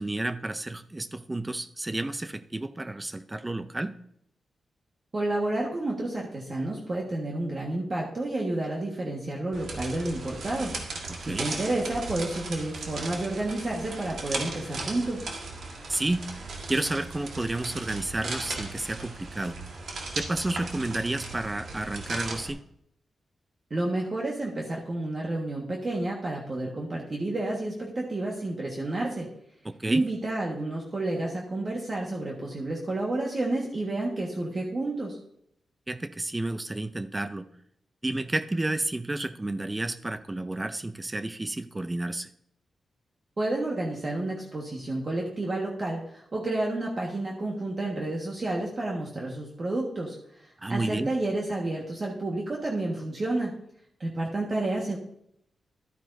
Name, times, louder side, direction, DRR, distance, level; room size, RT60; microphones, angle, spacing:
voice 1, 0.0-3.9 11.1-11.5 15.9-16.3 16.7-19.6 20.2-22.6 29.6-30.0 35.9-37.5 38.0-42.3 50.6-51.1, right 2 dB, 20° right, 11 dB, 0.4 m, -31 dB
voice 2, 5.1-10.7 11.2-15.2 23.7-29.3 29.9-35.2 43.4-53.5 54.0-55.0, right 2 dB, 40° right, -2 dB, 1.5 m, -30 dB
sound 1, 9.5-22.5, right 3 dB, 75° right, 1.8 m, -37 dB
12.5 x 9.1 x 2.7 m, 0.73 s
cardioid pair, 85°, 0 cm